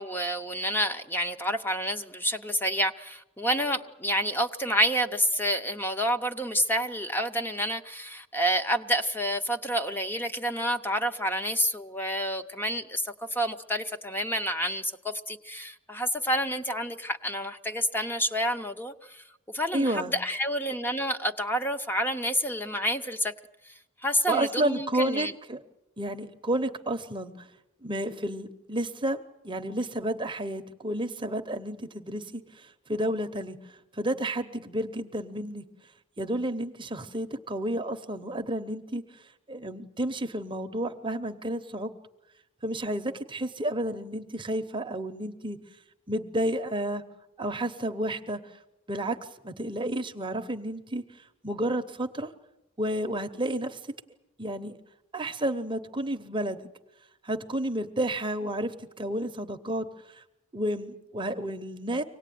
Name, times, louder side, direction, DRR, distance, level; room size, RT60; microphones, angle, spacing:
voice 1, 0.0-19.2 19.5-23.3 23.7-23.8 24.0-25.3, equal, 10° left, 7 dB, 0.8 m, -29 dB
voice 2, 19.7-20.1 24.3-25.6 26.0-27.5 27.8-35.6 36.2-39.0 39.5-41.9 42.6-45.6 46.1-47.0 47.4-48.6 48.9-49.2 49.4-51.0 51.4-52.3 52.8-53.8 54.4-54.8 55.1-56.6 57.2-60.2 60.5-62.0, right 1 dB, 20° right, 7 dB, 0.8 m, -31 dB
25.0 x 18.5 x 9.3 m, 0.94 s
head